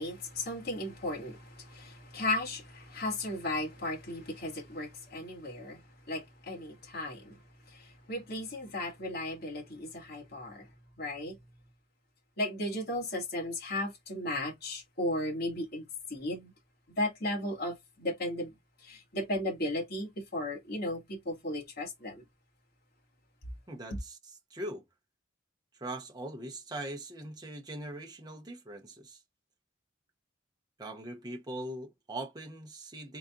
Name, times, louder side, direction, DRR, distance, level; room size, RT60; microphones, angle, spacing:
voice 1, 0.0-10.7 11.0-11.4 12.4-16.5 17.0-22.2, left 1 dB, 55° left, 1.8 m, -35 dB
voice 2, 23.7-24.2 24.5-24.8 25.8-29.2 30.8-33.2, right 1 dB, 20° right, 0.8 m, -41 dB
4.1 x 3.8 x 2.3 m
head